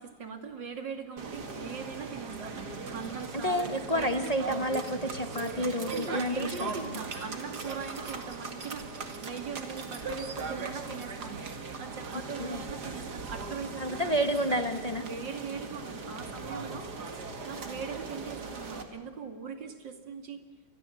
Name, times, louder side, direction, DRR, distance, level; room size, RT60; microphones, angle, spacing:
voice 1, 0.0-4.7 5.9-14.4 15.0-17.1 17.5-20.4, right 6 dB, 85° right, 7 dB, 3.1 m, -41 dB
sound 1, 1.2-18.8, right 4 dB, 65° right, 2.6 m, -39 dB
voice 2, 3.4-7.0 12.4-12.6 13.8-15.0, equal, 25° left, 8 dB, 1.3 m, -30 dB
26.5 x 21.0 x 7.8 m, 1.3 s
omnidirectional pair, 1.9 m